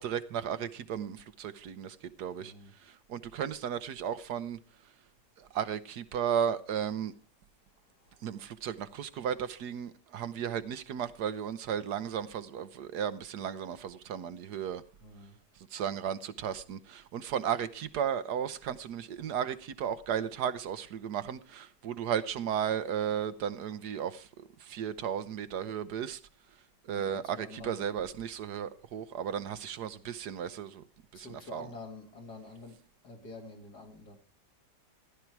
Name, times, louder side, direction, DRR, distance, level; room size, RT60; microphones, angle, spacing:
voice 1, 0.0-2.5 2.8-4.6 5.4-7.1 8.2-14.8 15.7-26.2 26.8-30.8 31.1-31.7, right 8 dB, 70° right, 1.4 m, -35 dB
voice 2, 2.4-2.7 7.9-8.3 15.0-15.4 26.9-27.8 31.1-34.2, left 3 dB, 65° left, 3.0 m, -48 dB
15.0 x 12.0 x 4.6 m
omnidirectional pair, 1.9 m